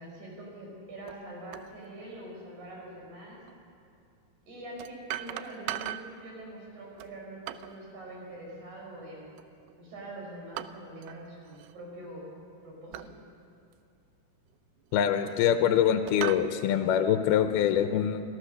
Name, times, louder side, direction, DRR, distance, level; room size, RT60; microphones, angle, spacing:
voice 1, 0.0-3.4 4.5-9.3 9.8-12.3 12.6-13.3, right 1 dB, 45° right, -2 dB, 6.8 m, -44 dB
sound 1, 1.1-1.2 1.5-1.7 3.5-3.6 4.8-6.2 7.0-7.8 9.4-9.8 10.6-11.2 11.5-11.7 12.9-13.1 13.7-13.8 14.8-15.6 16.1-16.5, right 13 dB, 80° right, 2.4 m, -38 dB
voice 2, 14.9-18.2, left 9 dB, 75° left, 7 dB, 2.6 m, -24 dB
26.5 x 16.0 x 6.6 m, 2.4 s
omnidirectional pair, 4.9 m